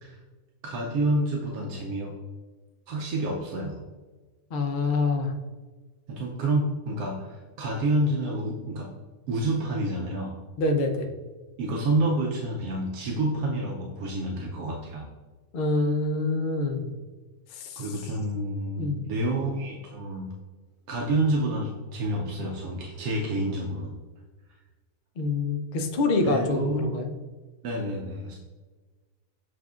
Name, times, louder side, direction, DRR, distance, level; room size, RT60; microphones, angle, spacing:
voice 1, 0.6-2.1 2.9-3.8 6.1-8.9 9.3-10.4 11.6-15.1 17.8-20.3 20.9-24.0 26.2-27.0 27.6-28.4, right 1 dB, 85° right, -1 dB, 1.1 m, -28 dB
voice 2, 4.5-5.3 10.6-11.1 15.5-16.9 17.5-17.8 18.8-19.0 25.2-27.1, left 3 dB, 80° left, 4 dB, 0.4 m, -26 dB
7.5 x 2.5 x 2.3 m, 1.3 s
omnidirectional pair, 1.5 m